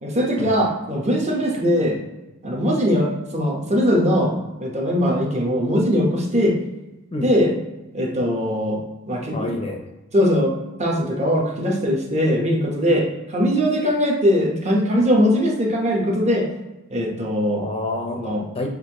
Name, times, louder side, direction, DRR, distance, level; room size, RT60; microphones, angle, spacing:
voice 1, 0.0-2.0 2.4-6.6 7.2-7.6 7.9-8.8 9.1-9.5 10.1-10.5 10.8-16.5 16.9-17.7 18.1-18.4, equal, 30° right, -2 dB, 1.0 m, -20 dB
voice 2, 9.3-9.8 17.6-18.7, left 2 dB, 25° left, 2 dB, 0.5 m, -28 dB
6.4 x 2.6 x 3.0 m, 1.0 s
head